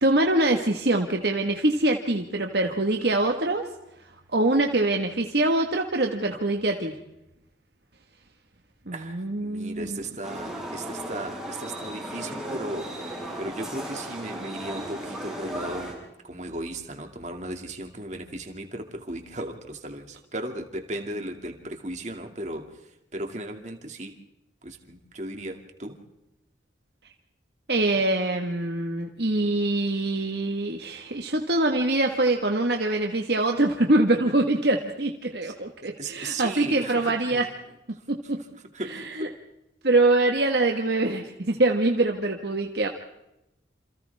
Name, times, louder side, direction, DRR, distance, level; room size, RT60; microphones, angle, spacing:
voice 1, 0.0-3.7 4.3-6.9 8.9-10.0 27.7-37.5 38.1-38.4 38.9-39.3 39.8-42.9, right 2 dB, 60° right, 3 dB, 1.6 m, -24 dB
voice 2, 8.9-13.1 13.4-15.9 16.2-22.7 23.1-24.2 24.6-26.0 35.4-35.5 36.0-37.5 38.3-38.5 38.7-39.3, right 1 dB, 40° right, 4 dB, 2.4 m, -36 dB
sound 1, 10.2-15.9, right 1 dB, ahead, 6.6 m, -36 dB
28.5 x 27.5 x 3.6 m, 0.88 s
head